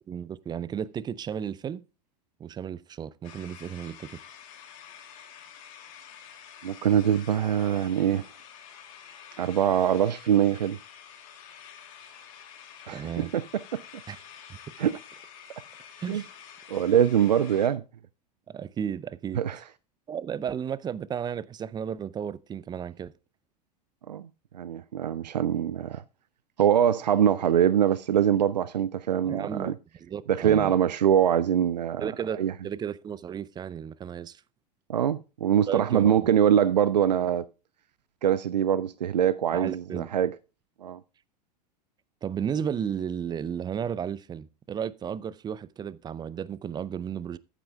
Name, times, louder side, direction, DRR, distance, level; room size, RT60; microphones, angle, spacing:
voice 1, 0.1-1.8 2.4-4.2 12.9-13.3 14.1-14.2 16.0-16.3 18.5-19.4 20.1-23.1 29.2-29.7 30.0-30.8 32.0-34.4 35.7-36.3 39.5-40.1 42.2-47.4, right 8 dB, 20° right, 0.5 m, -33 dB
sound 1, 3.2-17.7, left 8 dB, 55° left, 2.6 m, -48 dB
voice 2, 6.6-8.3 9.4-10.8 12.9-13.4 13.7-13.8 14.8-15.0 16.1-16.2 16.7-17.8 19.4-19.6 24.1-24.3 24.5-26.0 26.6-29.7 30.3-32.1 32.4-32.5 34.9-37.4 38.2-40.3 40.8-41.0, right 9 dB, 80° right, 0.4 m, -23 dB
14.0 x 8.8 x 2.3 m
figure-of-eight pair, 85°, 21 cm